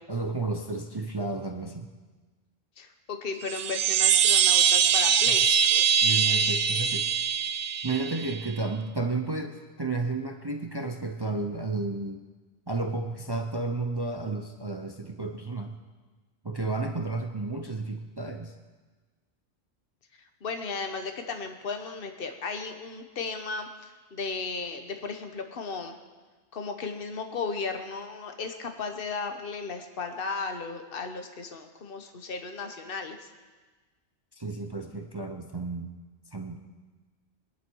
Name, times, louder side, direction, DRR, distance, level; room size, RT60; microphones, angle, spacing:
voice 1, 0.1-1.9 6.0-7.1 7.8-12.2 12.7-15.8 16.4-18.5 34.3-35.9 36.3-36.6, right 3 dB, 25° right, 4 dB, 0.7 m, -32 dB
voice 2, 2.8-5.9 20.4-26.0 26.5-33.3, left 4 dB, 50° left, 6 dB, 1.3 m, -35 dB
sound 1, 3.4-8.5, right 8 dB, 65° right, 0.8 m, -23 dB
21.5 x 11.5 x 4.7 m, 1.3 s
omnidirectional pair, 1.2 m